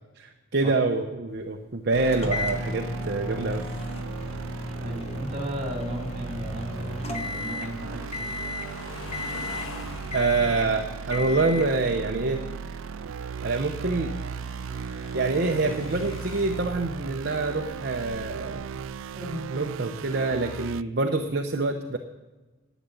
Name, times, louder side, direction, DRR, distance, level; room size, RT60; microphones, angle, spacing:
voice 1, 0.2-3.6 10.1-12.4 13.4-14.1 15.1-18.7 19.5-22.0, right 3 dB, 50° right, 3 dB, 0.7 m, -26 dB
sound 1, 1.9-20.1, left 2 dB, 75° left, 1.4 m, -46 dB
sound 2, 1.9-20.8, right 6 dB, 70° right, 0.3 m, -37 dB
sound 3, 2.1-7.8 8.1-8.7 9.1-9.8 10.1-10.7 11.1-11.7, left 2 dB, 30° left, 1.1 m, -34 dB
voice 2, 4.8-8.4 18.7-18.8 19.1-19.4, equal, 30° right, 1 dB, 2.7 m, -35 dB
11.0 x 8.2 x 8.9 m, 1.2 s
head